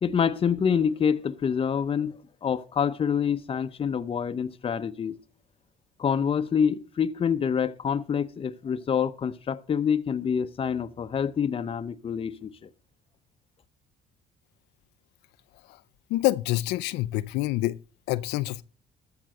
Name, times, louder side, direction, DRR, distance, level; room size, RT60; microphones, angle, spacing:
voice 1, 0.0-2.1 2.4-5.1 6.0-12.5, left 7 dB, 35° left, 0.8 m, -26 dB
voice 2, 16.1-17.8 18.1-18.6, left 16 dB, 85° left, 0.5 m, -27 dB
13.5 x 6.0 x 6.5 m
cardioid pair, 110°, 17 cm